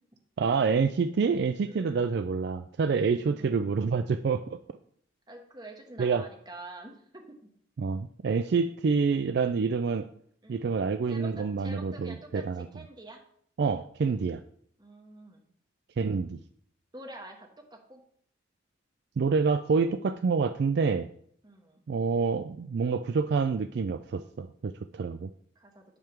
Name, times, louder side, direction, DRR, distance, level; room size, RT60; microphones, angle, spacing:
voice 1, 0.4-4.6 6.0-6.2 7.8-10.1 10.5-12.7 13.6-14.4 16.0-16.4 19.2-21.1 21.9-25.3, right 5 dB, 55° right, 10 dB, 0.3 m, -27 dB
voice 2, 1.7-2.1 3.0-3.6 5.3-7.4 10.4-10.7 11.1-13.2 14.8-15.4 16.9-18.0 21.4-21.8 25.5-25.8, right 2 dB, 20° right, 2 dB, 1.2 m, -47 dB
10.5 x 3.6 x 5.9 m, 0.65 s
head